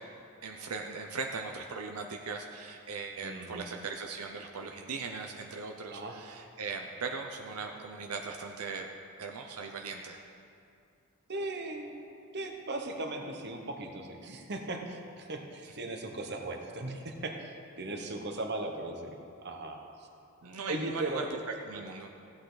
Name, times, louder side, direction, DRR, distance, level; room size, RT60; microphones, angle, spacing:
voice 1, 0.4-8.9 9.2-10.2 15.6-15.7 20.4-21.4 21.6-22.1, right 4 dB, 80° right, 3 dB, 0.7 m, -39 dB
voice 2, 3.2-3.7 5.9-6.2 11.3-12.0 12.3-20.1 20.7-21.3, right 2 dB, 50° right, 4 dB, 1.0 m, -38 dB
15.5 x 8.9 x 4.0 m, 2.5 s
head